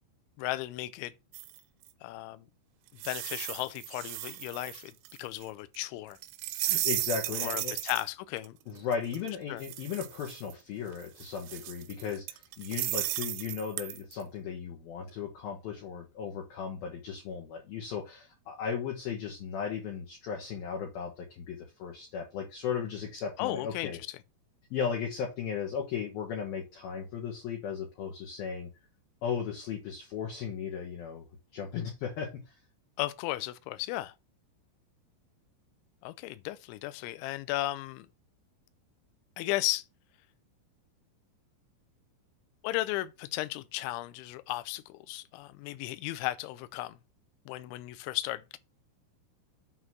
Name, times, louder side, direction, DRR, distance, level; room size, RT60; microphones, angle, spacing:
voice 1, 0.4-1.1 2.0-2.5 3.0-4.9 5.2-6.2 7.3-8.6 9.5-9.6 23.4-24.2 33.0-34.1 36.0-38.1 39.4-39.8 42.6-47.0 47.5-48.6, left 17 dB, 80° left, 2.9 m, -35 dB
sound 1, 1.3-1.9 3.0-5.4 5.7-5.8 6.2-8.1 8.4-8.5 8.8-10.5 11.0-14.1, right 15 dB, 85° right, 3.3 m, -35 dB
voice 2, 6.6-7.8 8.7-24.0 24.7-28.7 29.2-31.3 31.5-32.5, left 7 dB, 65° left, 2.6 m, -36 dB
7.9 x 3.9 x 6.1 m
omnidirectional pair, 5.9 m